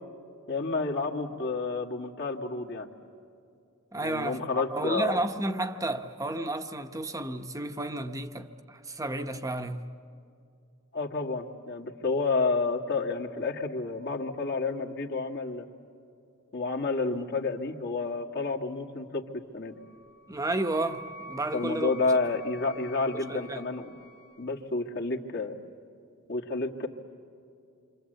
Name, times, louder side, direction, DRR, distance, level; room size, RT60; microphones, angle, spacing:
voice 1, 0.5-2.9 4.0-5.2 10.9-15.7 16.5-19.8 21.5-23.9 24.4-25.6 26.3-26.9, left 3 dB, 55° left, 2.0 m, -30 dB
voice 2, 3.9-9.9 20.3-21.9 23.1-23.6, right 2 dB, 15° right, 0.9 m, -32 dB
Wind instrument woodwind instrument, 19.8-24.6, right 1 dB, 75° left, 2.0 m, -47 dB
27.5 x 25.5 x 8.0 m
head